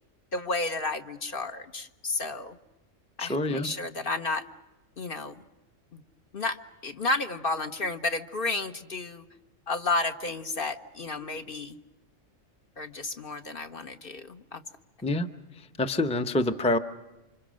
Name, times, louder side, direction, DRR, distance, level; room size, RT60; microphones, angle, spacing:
voice 1, 0.3-2.5 3.2-4.4 5.0-5.4 5.9-6.0 6.3-9.2 9.7-11.8 12.8-14.6, left 3 dB, 45° left, 7 dB, 1.2 m, -32 dB
voice 2, 3.2-3.7 15.0-15.3 15.6-16.8, left 2 dB, 5° left, 8 dB, 0.7 m, -26 dB
28.5 x 26.0 x 6.4 m, 1.0 s
omnidirectional pair, 1.4 m